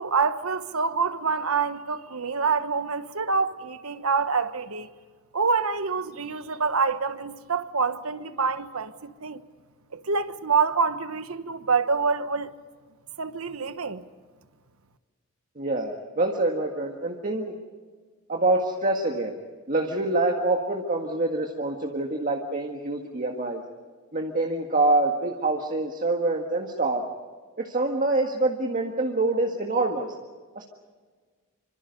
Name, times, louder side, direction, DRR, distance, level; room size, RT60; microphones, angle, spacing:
voice 1, 0.0-4.9 5.3-9.4 9.9-12.5 13.2-14.0, right 5 dB, 85° right, 1.2 m, -26 dB
voice 2, 15.6-17.5 18.3-19.3 19.7-23.6 24.1-27.0 27.6-30.1 30.6-30.7, right 2 dB, 40° right, 1.8 m, -26 dB
27.5 x 25.5 x 5.4 m
head